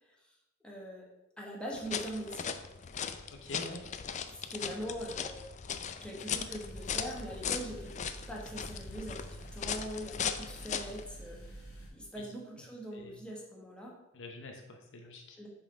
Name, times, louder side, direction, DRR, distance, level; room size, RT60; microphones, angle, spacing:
voice 1, 0.0-0.4 0.6-1.0 1.4-2.5 4.3-5.6 6.0-7.9 8.3-11.6 11.9-13.9 15.4-15.5, equal, 5° left, -3 dB, 1.3 m, -42 dB
sound 1, 1.7-11.0, left 7 dB, 35° left, 0.4 m, -38 dB
voice 2, 3.3-3.8 12.2-12.3 12.9-13.2 14.1-15.4, left 2 dB, 60° left, 3 dB, 0.8 m, -46 dB
sound 2, 6.6-11.9, right 1 dB, 85° left, 1.9 m, -48 dB
6.3 x 4.1 x 5.1 m, 0.95 s
head